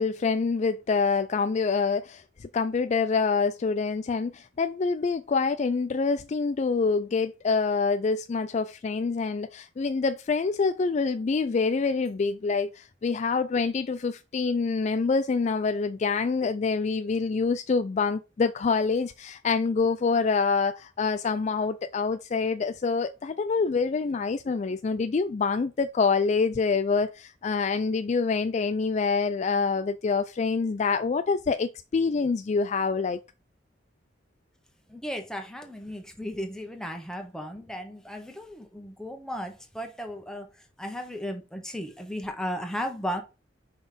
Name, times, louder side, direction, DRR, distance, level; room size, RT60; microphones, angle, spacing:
voice 1, 0.0-33.2, left 4 dB, 40° left, 0.3 m, -26 dB
voice 2, 34.9-40.5 40.8-43.2, equal, 5° left, 1.1 m, -35 dB
5.4 x 4.0 x 5.0 m
head